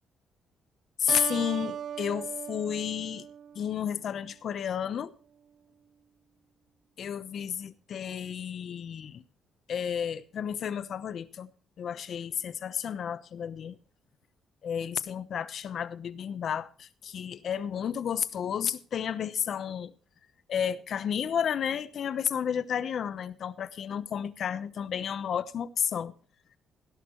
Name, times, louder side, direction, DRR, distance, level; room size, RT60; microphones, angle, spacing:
voice 1, 1.0-3.3 3.5-5.1 7.0-9.2 9.7-11.5 11.8-13.8 14.6-19.9 20.5-26.1, left 8 dB, 60° left, 0.9 m, -32 dB
Keyboard (musical), 1.1-4.0, right 9 dB, 60° right, 0.6 m, -38 dB
17.0 x 11.0 x 3.1 m
cardioid pair, 90°, 0 cm